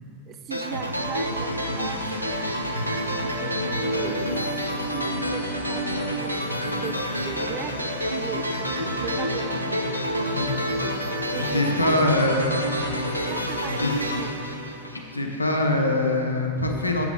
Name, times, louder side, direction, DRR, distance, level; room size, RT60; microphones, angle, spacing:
voice 1, 0.3-2.3 2.6-4.3 4.7-9.8 11.3-12.1 13.3-14.5, right 8 dB, 30° right, 7 dB, 0.4 m, -38 dB
sound 1, 0.5-15.3, equal, 90° right, 0.5 m, -28 dB
voice 2, 11.3-12.4 13.8-13.9 14.9-17.1, left 2 dB, 85° left, 2 dB, 0.7 m, -23 dB
7.7 x 5.7 x 3.9 m, 2.9 s
figure-of-eight pair, 90°, 0 cm